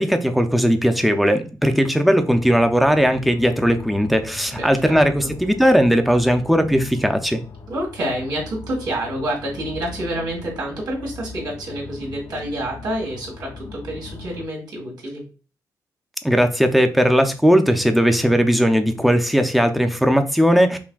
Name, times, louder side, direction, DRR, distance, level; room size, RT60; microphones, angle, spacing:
voice 1, 0.0-7.4 16.2-20.8, equal, ahead, 6 dB, 0.4 m, -18 dB
sound 1, 2.3-14.5, left 4 dB, 65° left, 0.5 m, -40 dB
voice 2, 4.6-5.3 7.7-15.2, right 1 dB, 85° right, -3 dB, 2.0 m, -28 dB
5.7 x 2.2 x 2.3 m, 0.36 s
wide cardioid pair, 125°, 7 cm